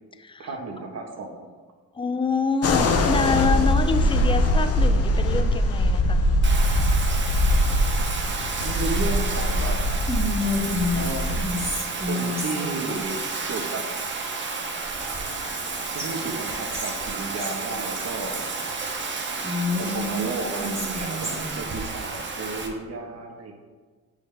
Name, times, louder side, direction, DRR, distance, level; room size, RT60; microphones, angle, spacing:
voice 1, 0.4-1.5 4.0-4.2 8.6-9.8 10.9-11.3 11.9-13.8 15.9-18.5 19.8-23.5, right 3 dB, 55° right, 2 dB, 1.3 m, -33 dB
voice 2, 1.9-6.3, left 4 dB, 15° left, 10 dB, 0.5 m, -26 dB
sound 1, 2.6-11.7, left 1 dB, 50° left, 0.8 m, -22 dB
Bathtub (filling or washing), 6.4-22.7, right 4 dB, 40° right, 1.1 m, -31 dB
Whispering, 10.1-12.9 14.9-15.7 16.0-16.1 16.5-17.6 19.4-21.6, left 2 dB, 10° right, 1.9 m, -29 dB
8.2 x 5.0 x 3.4 m, 1.4 s
cardioid pair, 90°, 30 cm